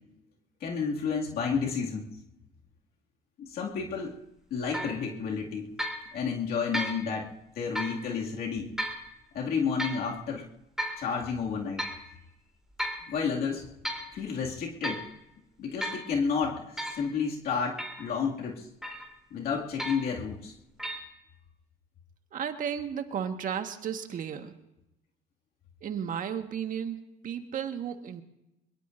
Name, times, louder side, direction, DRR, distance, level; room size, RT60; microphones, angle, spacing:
voice 1, 0.6-2.1 3.4-4.2 4.5-5.7 6.1-7.3 7.6-8.7 9.3-10.5 11.0-11.8 13.1-13.7 14.1-15.1 15.6-18.7 19.3-20.6, left 6 dB, 65° left, -2 dB, 2.4 m, -31 dB
sound 1, 4.7-5.0 5.8-6.0 6.7-7.0 7.7-8.0 8.8-9.0 9.8-10.0 10.8-11.0 11.8-12.0 12.8-13.1 13.6-14.1 14.8-15.1 15.8-16.1 16.8-17.0 17.8-18.1 18.8-19.1 19.8-20.1 20.8-21.0, equal, 5° right, 3.5 m, -34 dB
voice 2, 22.3-24.5 25.8-28.2, right 8 dB, 55° right, 6 dB, 1.6 m, -34 dB
23.0 x 22.0 x 2.7 m, 0.89 s
cardioid pair, 110°, 17 cm